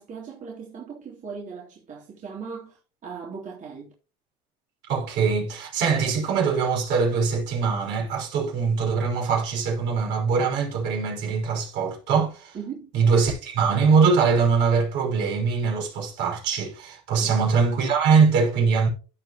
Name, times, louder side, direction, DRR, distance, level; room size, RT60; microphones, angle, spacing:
voice 1, 0.0-3.9 12.5-12.9 17.2-17.4, right 6 dB, 40° right, 3.3 m, -38 dB
voice 2, 4.9-12.6 12.9-18.9, right 5 dB, 65° right, 5.5 m, -22 dB
16.0 x 5.3 x 3.0 m
supercardioid pair, 95°, 19 cm